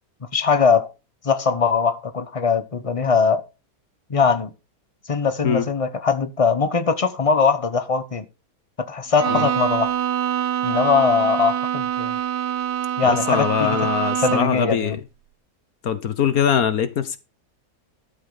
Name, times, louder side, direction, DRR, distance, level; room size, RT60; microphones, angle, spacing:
voice 1, 0.3-0.9 1.2-3.4 4.1-4.5 5.1-8.3 8.8-9.9 10.6-12.2 13.0-13.8 14.2-15.0, left 5 dB, 25° left, 1.0 m, -21 dB
Bowed string instrument, 9.2-14.7, right 11 dB, 55° right, 0.9 m, -25 dB
voice 2, 13.0-15.0 15.8-17.2, left 8 dB, 70° left, 1.5 m, -22 dB
12.5 x 7.6 x 4.0 m
omnidirectional pair, 1.6 m